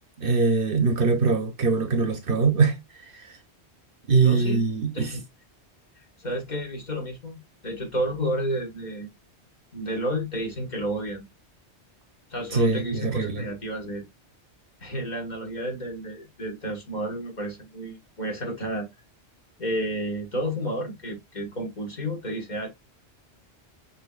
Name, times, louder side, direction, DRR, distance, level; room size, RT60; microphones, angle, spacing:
voice 1, 0.2-2.7 3.0-3.4 4.1-5.1 12.5-13.4, right 4 dB, 55° right, 1.0 m, -22 dB
voice 2, 4.2-4.6 4.9-5.2 6.2-9.1 9.7-11.3 12.3-14.1 14.8-18.9 19.6-22.7, equal, 40° left, 1.5 m, -31 dB
6.4 x 3.0 x 2.3 m
omnidirectional pair, 1.1 m